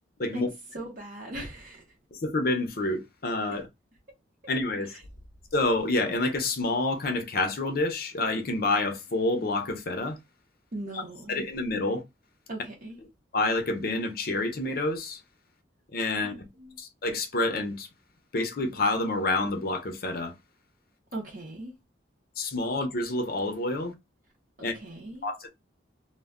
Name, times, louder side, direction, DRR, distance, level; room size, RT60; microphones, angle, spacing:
voice 1, 0.7-2.0 3.5-3.6 4.8-5.0 10.7-11.4 12.5-13.0 16.2-16.8 21.1-21.7 24.7-25.3, right 1 dB, 45° right, 0.6 m, -39 dB
voice 2, 2.1-3.7 4.5-5.0 5.5-10.2 11.3-12.0 13.3-15.2 15.9-16.5 16.8-17.9 18.3-20.3 22.4-23.9 24.6-24.7 25.2-25.5, left 2 dB, 55° left, 0.6 m, -28 dB
2.2 x 2.1 x 3.5 m
head